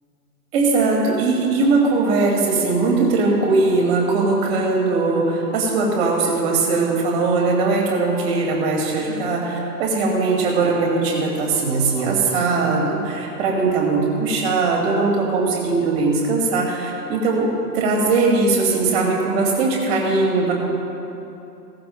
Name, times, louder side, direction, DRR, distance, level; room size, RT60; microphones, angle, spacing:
voice 1, 0.5-20.5, right 3 dB, 35° right, -2 dB, 2.9 m, -20 dB
17.5 x 14.5 x 2.5 m, 2.8 s
figure-of-eight pair, 120°, 50 cm